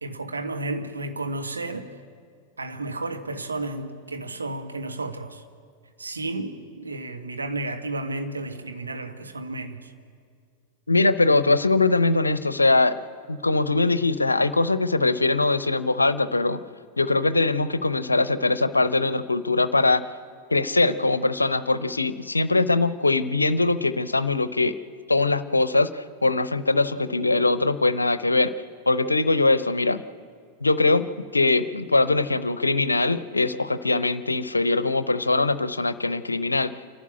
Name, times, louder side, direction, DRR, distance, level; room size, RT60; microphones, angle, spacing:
voice 1, 0.0-2.0 2.6-5.4 6.0-9.9, right 2 dB, 75° right, 1.5 m, -32 dB
voice 2, 10.9-13.0 13.3-16.6 17.0-20.0 20.5-24.8 25.1-28.5 28.9-30.0 30.6-36.7, left 3 dB, 80° left, 0.7 m, -22 dB
28.0 x 12.0 x 9.7 m
figure-of-eight pair, 90°, 0 cm